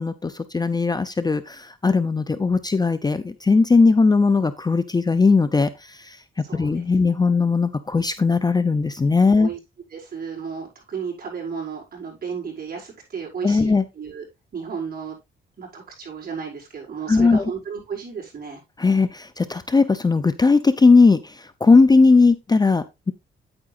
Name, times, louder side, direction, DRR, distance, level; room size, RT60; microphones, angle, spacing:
voice 1, 0.0-6.2 6.5-9.5 13.4-13.8 17.1-17.5 18.8-23.1, left 4 dB, 20° left, 12 dB, 0.6 m, -18 dB
voice 2, 6.4-7.3 9.4-9.6 9.9-14.2 14.5-15.2 15.6-18.6, right 6 dB, 50° right, -3 dB, 5.5 m, -34 dB
9.3 x 8.8 x 2.5 m, 0.22 s
cardioid pair, 105°, 20 cm